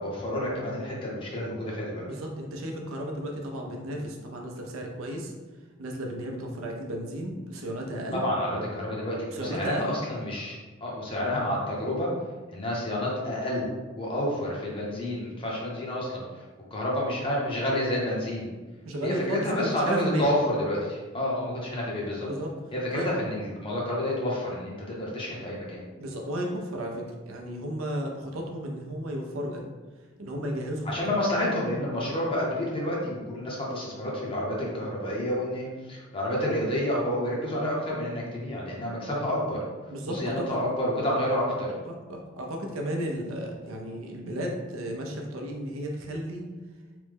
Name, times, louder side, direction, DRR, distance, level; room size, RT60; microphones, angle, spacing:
voice 1, 0.0-2.1 8.1-12.1 12.5-13.7 14.0-16.4 16.7-18.5 19.0-22.3 22.7-25.8 30.8-39.6 40.1-41.7, left 1 dB, 25° left, -4 dB, 0.7 m, -29 dB
voice 2, 2.0-5.3 5.8-8.2 9.3-10.0 18.8-20.3 22.2-22.5 22.9-23.1 26.0-29.6 30.2-31.1 39.9-40.6 41.9-46.4, right 1 dB, 85° right, 1 dB, 0.5 m, -33 dB
3.3 x 2.1 x 3.3 m, 1.3 s
head